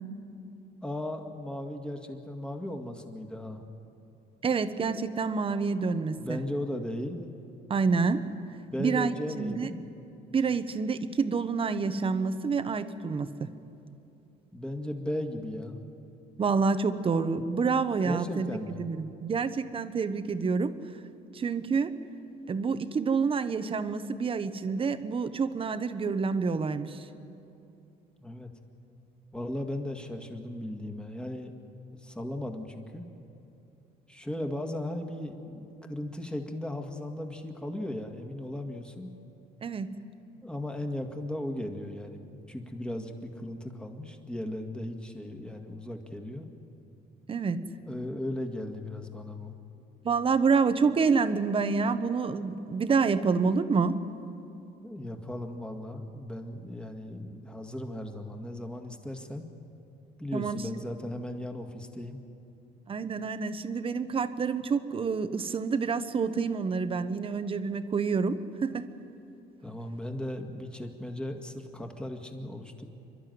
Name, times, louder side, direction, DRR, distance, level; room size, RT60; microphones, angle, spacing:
voice 1, 0.8-3.6 6.2-7.3 8.7-9.9 14.5-15.8 18.1-18.8 28.2-28.5 29.3-31.5 32.0-33.1 34.1-39.1 40.4-46.5 47.9-49.5 54.8-59.5 60.2-62.2 69.6-72.8, left 1 dB, 5° left, 4 dB, 1.9 m, -36 dB
voice 2, 4.4-6.4 7.7-8.2 8.8-9.7 10.3-13.5 16.4-18.5 18.8-20.7 21.3-21.9 22.5-27.0 39.6-39.9 47.3-47.6 50.0-54.0 60.3-60.6 62.9-68.9, right 5 dB, 30° right, 11 dB, 1.1 m, -28 dB
28.0 x 12.0 x 9.4 m, 2.7 s
cardioid pair, 110°, 17 cm